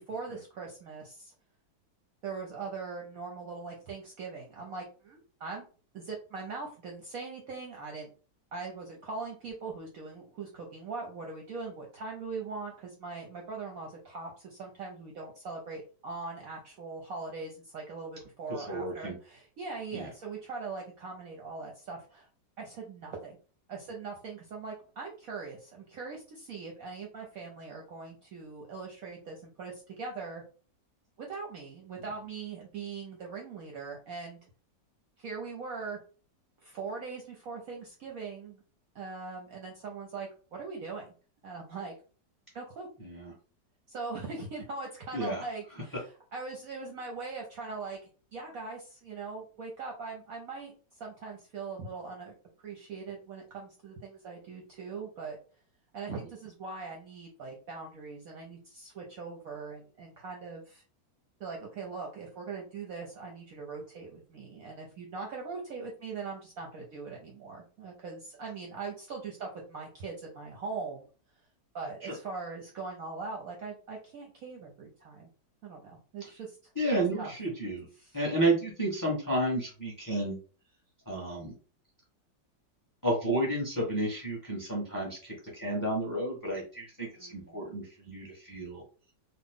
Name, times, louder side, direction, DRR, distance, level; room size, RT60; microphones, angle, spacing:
voice 1, 0.0-1.3 2.2-5.6 5.9-8.1 8.5-22.3 22.6-23.4 23.7-30.4 31.2-34.4 35.2-36.0 36.6-38.6 38.9-41.1 41.4-41.9 42.5-42.9 43.9-48.0 48.3-52.3 52.6-55.4 55.9-60.8 61.4-71.1 71.7-75.3 75.6-76.6 77.2-77.3 78.0-78.2 87.1-87.6, right 4 dB, 65° right, 0 dB, 0.9 m, -41 dB
voice 2, 18.7-19.1 19.9-20.1 43.0-43.3 45.1-45.4 72.0-72.1 76.7-77.9 78.1-80.4 81.1-81.5 83.0-88.8, right 1 dB, 15° left, -2 dB, 0.8 m, -31 dB
3.0 x 2.3 x 3.5 m, 0.37 s
omnidirectional pair, 2.0 m